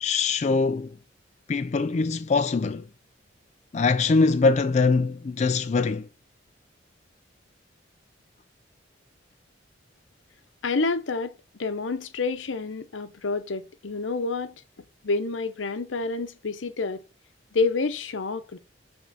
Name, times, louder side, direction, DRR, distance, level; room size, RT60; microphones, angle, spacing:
voice 1, 0.0-1.0 1.5-2.9 3.7-6.1, left 4 dB, 35° left, 0.3 m, -23 dB
voice 2, 10.6-14.5 15.0-17.0 17.5-18.6, left 3 dB, 85° left, 0.8 m, -28 dB
9.2 x 3.6 x 4.2 m
head